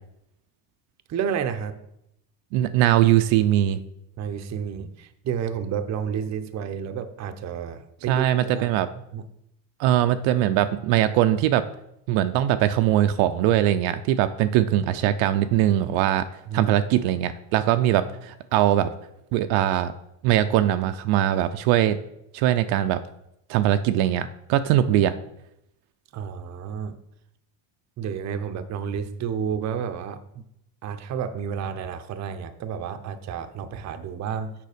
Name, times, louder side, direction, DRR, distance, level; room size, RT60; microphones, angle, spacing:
voice 1, 1.1-1.8 4.2-8.6 9.1-9.3 16.5-16.7 26.1-26.9 28.0-30.4 30.8-34.5, right 7 dB, 35° right, 9 dB, 0.6 m, -31 dB
voice 2, 2.5-3.8 8.1-8.9 9.8-11.6 12.1-16.3 16.5-18.9 19.3-19.9 20.2-22.0 22.3-23.0 23.5-25.1, right 12 dB, 70° right, 10 dB, 0.6 m, -21 dB
6.8 x 5.5 x 4.9 m, 0.80 s
cardioid pair, 120°, 48 cm